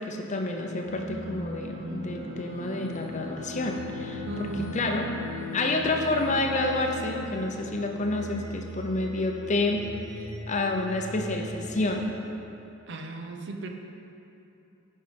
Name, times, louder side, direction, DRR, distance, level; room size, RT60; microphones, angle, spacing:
voice 1, 0.0-4.5 4.7-5.1 5.5-9.8 10.5-12.1, left 2 dB, 35° left, 2 dB, 0.7 m, -29 dB
sound 1, 0.8-12.0, right 1 dB, 30° right, 1.1 m, -41 dB
Bowed string instrument, 0.9-8.6, left 3 dB, 80° right, 0.9 m, -41 dB
voice 2, 4.3-4.9 12.9-13.7, right 3 dB, 55° right, 3 dB, 0.7 m, -36 dB
10.0 x 5.5 x 5.2 m, 2.8 s
head